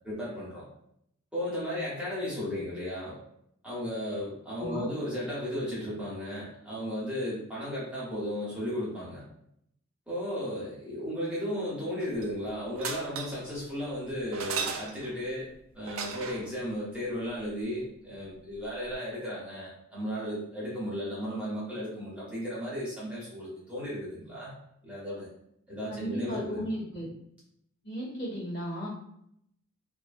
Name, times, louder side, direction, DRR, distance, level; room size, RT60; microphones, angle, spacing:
voice 1, 0.0-0.6 1.3-3.2 3.6-9.2 10.1-15.5 15.7-24.5 24.8-25.3 25.7-26.7, equal, 5° right, -9 dB, 0.8 m, -35 dB
voice 2, 4.6-4.9 25.9-27.1 27.8-28.9, equal, 55° left, -7 dB, 1.2 m, -35 dB
sound 1, 12.0-12.4 12.8-13.5 14.3-15.2 15.9-16.5 18.6-18.7 18.9-19.0, right 5 dB, 75° right, 0.3 m, -36 dB
2.5 x 2.4 x 2.5 m, 0.73 s
head